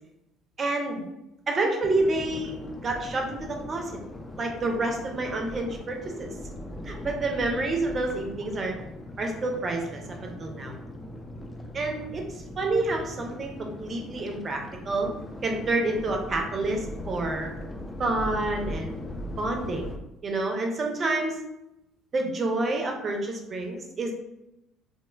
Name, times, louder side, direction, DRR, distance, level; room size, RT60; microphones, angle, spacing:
voice 1, 0.6-1.0 1.5-3.9 4.4-6.4 6.8-8.8 9.2-10.8 11.7-15.1 15.4-17.5 18.0-18.9 19.4-19.9 20.2-21.4 22.1-24.1, right 2 dB, 40° right, 2 dB, 0.5 m, -28 dB
sound 1, 1.8-20.0, left 1 dB, 20° left, 0.4 m, -39 dB
2.9 x 2.1 x 2.2 m, 0.89 s
hypercardioid pair, 55°, 0 cm